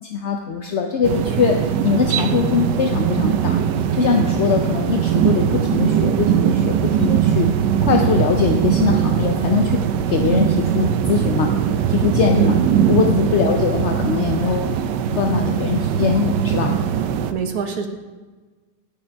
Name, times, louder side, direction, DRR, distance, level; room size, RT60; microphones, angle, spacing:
voice 1, 0.0-3.6 3.9-7.5 7.8-11.6 11.9-12.6 12.9-14.7 15.1-16.7, left 6 dB, 60° left, 3 dB, 0.7 m, -21 dB
sound 1, 1.0-17.3, right 9 dB, 80° right, 1.2 m, -20 dB
voice 2, 12.4-12.8 17.3-17.9, right 6 dB, 65° right, 5 dB, 1.5 m, -24 dB
16.5 x 6.6 x 3.4 m, 1.3 s
omnidirectional pair, 1.8 m